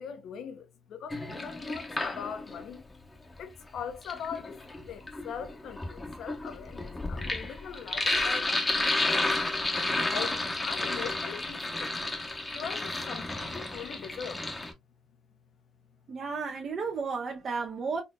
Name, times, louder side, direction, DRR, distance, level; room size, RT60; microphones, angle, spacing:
voice 1, 0.0-2.8 3.4-4.6 4.8-9.4 10.1-11.9 12.5-14.4, left 7 dB, 75° left, 0.8 m, -41 dB
Sink (filling or washing), 1.1-2.6 3.8-14.7, left 2 dB, 20° left, 1.0 m, -31 dB
voice 2, 16.1-18.0, right 5 dB, 55° right, 1.0 m, -33 dB
4.2 x 2.8 x 2.3 m
cardioid pair, 90°, 0 cm